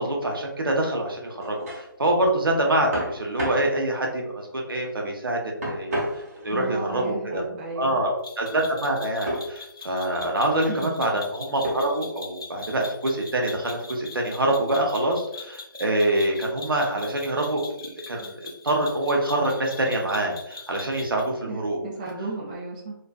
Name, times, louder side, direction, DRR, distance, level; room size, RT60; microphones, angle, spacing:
voice 1, 0.0-6.0 6.4-7.4 7.7-21.8, right 1 dB, 75° right, 0 dB, 0.7 m, -25 dB
sound 1, 1.3-1.9 2.9-3.7 5.6-6.6 9.3-9.5 10.2-10.7 11.6-12.1, equal, 40° right, 0.8 m, -31 dB
voice 2, 6.5-8.1 10.6-11.0 21.5-22.9, right 3 dB, 20° right, -3 dB, 0.4 m, -35 dB
sound 2, 8.2-21.3, left 4 dB, 75° left, 0.8 m, -42 dB
2.4 x 2.4 x 2.3 m, 0.84 s
figure-of-eight pair, 145°, 12 cm